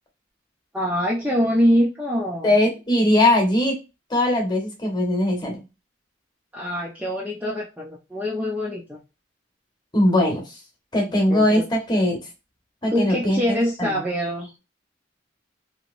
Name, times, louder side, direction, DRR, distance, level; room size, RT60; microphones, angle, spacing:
voice 1, 0.7-2.6 6.5-9.0 11.3-11.6 12.9-14.5, equal, 5° right, -3 dB, 0.6 m, -24 dB
voice 2, 2.4-3.8 4.1-5.5 9.9-10.4 10.9-12.2 12.8-14.0, left 1 dB, 25° left, 0 dB, 1.2 m, -20 dB
2.9 x 2.8 x 2.5 m, 0.27 s
head